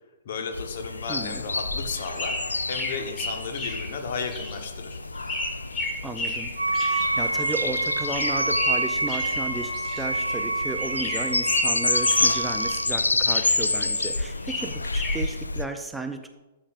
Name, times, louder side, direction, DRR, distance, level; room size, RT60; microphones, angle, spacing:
voice 1, 0.2-2.4 2.7-5.0, left 5 dB, 55° left, 5 dB, 1.1 m, -34 dB
sound 1, 0.5-15.7, left 3 dB, 80° left, 0.3 m, -29 dB
voice 2, 1.1-1.4 6.0-16.3, right 2 dB, 5° right, 6 dB, 0.5 m, -34 dB
sound 2, 1.5-10.5 10.8-13.0 13.3-15.3, left 1 dB, 25° left, 1.7 m, -33 dB
Wind instrument woodwind instrument, 6.6-12.9, right 2 dB, 85° right, 0.8 m, -27 dB
12.5 x 7.3 x 2.5 m, 1.1 s
figure-of-eight pair, 110°, 0 cm